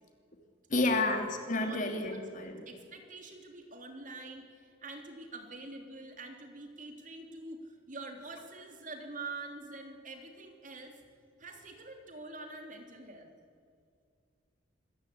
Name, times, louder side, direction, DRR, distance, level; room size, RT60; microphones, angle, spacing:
voice 1, 0.7-2.6, left 2 dB, 45° left, 5 dB, 2.7 m, -30 dB
voice 2, 2.1-11.0 11.4-13.3, right 3 dB, 45° right, 4 dB, 3.3 m, -46 dB
26.0 x 14.5 x 8.7 m, 2.2 s
head